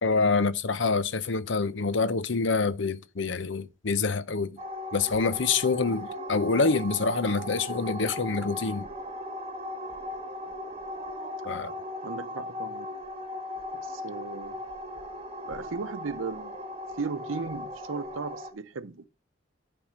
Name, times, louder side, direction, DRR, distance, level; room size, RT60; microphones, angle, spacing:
voice 1, 0.0-4.5 4.9-8.9 11.4-11.7, left 4 dB, 65° left, 0.7 m, -26 dB
sound 1, 4.6-18.5, left 1 dB, 30° right, 1.3 m, -38 dB
voice 2, 12.0-13.0 13.7-14.6 15.5-16.5 17.0-19.1, right 4 dB, 80° right, 0.7 m, -36 dB
10.0 x 3.5 x 6.3 m
head